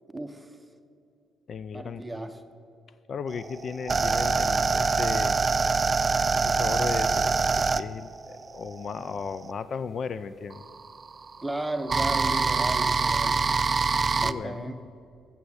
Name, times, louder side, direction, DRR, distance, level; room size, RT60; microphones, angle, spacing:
voice 1, 0.1-0.6 1.7-2.4 11.4-13.4 14.2-14.7, right 1 dB, 10° right, 7 dB, 0.8 m, -34 dB
voice 2, 1.5-2.0 3.1-5.5 5.9-6.0 6.3-10.7 14.2-14.8, left 6 dB, 50° left, 14 dB, 0.3 m, -36 dB
sound 1, 3.3-9.5 10.5-14.3, right 4 dB, 35° right, 0.3 m, -24 dB
8.3 x 7.1 x 7.9 m, 2.5 s
cardioid pair, 90°, 0 cm